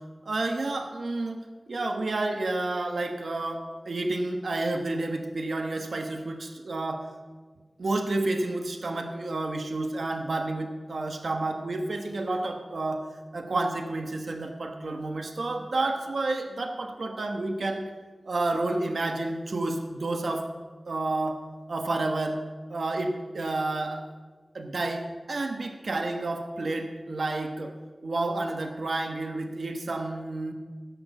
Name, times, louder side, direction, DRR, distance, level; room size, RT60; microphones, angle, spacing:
voice 1, 0.2-1.4 1.7-7.1 7.8-13.1 13.3-17.8 18.2-20.5 20.9-21.4 21.7-22.4 22.7-24.0 24.5-27.7 28.0-30.5, right 2 dB, 80° right, 5 dB, 1.2 m, -30 dB
16.5 x 6.2 x 8.2 m, 1.4 s
wide cardioid pair, 50°, 0 cm